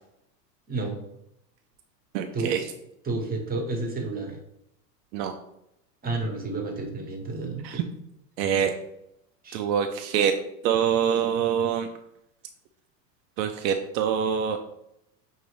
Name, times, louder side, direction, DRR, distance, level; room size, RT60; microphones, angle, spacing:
voice 1, 2.1-2.6 5.1-5.3 7.6-7.8 8.4-8.7 9.5-10.3 10.6-11.9 13.4-14.6, right 8 dB, 90° right, 6 dB, 0.6 m, -25 dB
voice 2, 3.0-4.4 6.0-7.8 9.4-9.7, right 3 dB, 20° right, 2 dB, 0.9 m, -31 dB
5.4 x 2.7 x 3.1 m, 0.82 s
supercardioid pair, 125°, 50 cm